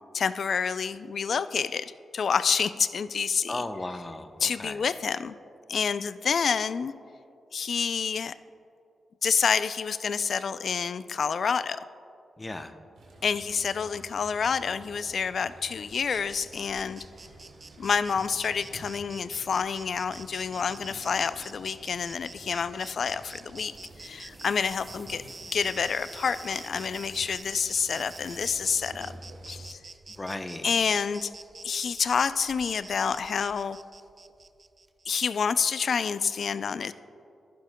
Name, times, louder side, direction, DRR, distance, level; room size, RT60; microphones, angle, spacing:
voice 1, 0.1-3.6 4.4-5.3 5.7-6.9 7.5-8.4 9.2-11.8 13.2-17.1 17.8-25.3 25.5-29.1 29.5-29.8 30.6-31.3 31.6-33.8 35.1-36.9, left 6 dB, 65° left, 14 dB, 0.3 m, -28 dB
voice 2, 3.5-4.8 12.4-12.7 30.2-30.7, left 2 dB, 30° left, 7 dB, 0.7 m, -35 dB
sound 1, 12.9-29.7, right 1 dB, 90° right, 1.8 m, -51 dB
Insect, 15.9-35.1, right 3 dB, 40° right, 0.3 m, -48 dB
sound 2, 23.6-29.1 30.1-30.4 30.7-31.0 32.2-32.8 33.1-33.7 34.1-34.5 34.9-35.0, right 1 dB, 10° right, 1.4 m, -54 dB
15.0 x 11.0 x 2.2 m, 2.6 s
cardioid pair, 55°, 0 cm